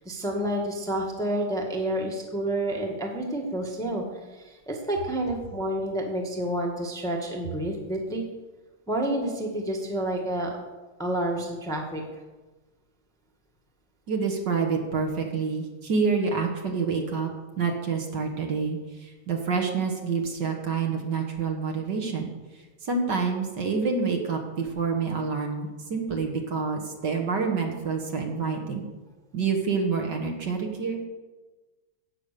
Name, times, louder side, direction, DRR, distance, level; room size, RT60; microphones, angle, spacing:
voice 1, 0.0-4.0 4.3-8.2 8.9-10.5 11.0-12.0, right 1 dB, ahead, 0 dB, 1.4 m, -29 dB
voice 2, 14.1-17.3 17.6-22.3 22.8-28.8 29.3-31.0, right 5 dB, 55° right, 2 dB, 2.0 m, -27 dB
16.5 x 6.0 x 6.8 m, 1.2 s
omnidirectional pair, 2.4 m